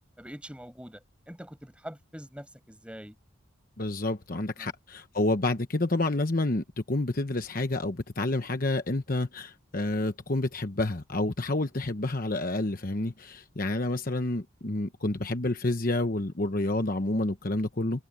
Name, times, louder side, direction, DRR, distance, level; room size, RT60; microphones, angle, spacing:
voice 1, 0.2-3.1 4.6-4.7, equal, 5° right, 7.5 m, -44 dB
voice 2, 3.8-18.0, left 2 dB, 45° left, 1.1 m, -29 dB
open air
head